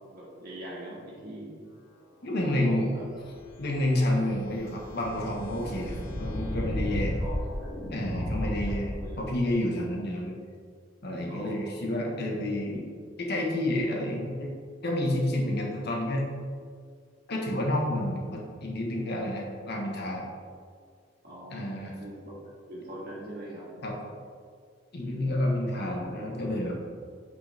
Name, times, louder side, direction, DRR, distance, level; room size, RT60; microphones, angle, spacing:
voice 1, 0.1-1.6 2.4-3.0 6.9-7.7 8.1-8.7 9.0-9.2 11.3-11.8 21.2-23.7 25.0-25.5 25.7-26.0, right 1 dB, 50° right, -5 dB, 1.8 m, -42 dB
voice 2, 2.2-2.9 3.6-7.2 7.9-10.4 11.0-12.8 13.2-14.5 14.8-16.3 17.3-20.2 21.5-22.0 23.8-23.9 24.9-26.8, left 1 dB, 55° left, -1 dB, 1.4 m, -29 dB
sound 1, 3.2-9.5, left 1 dB, 80° left, 0.9 m, -34 dB
8.3 x 5.5 x 3.5 m, 2.1 s
head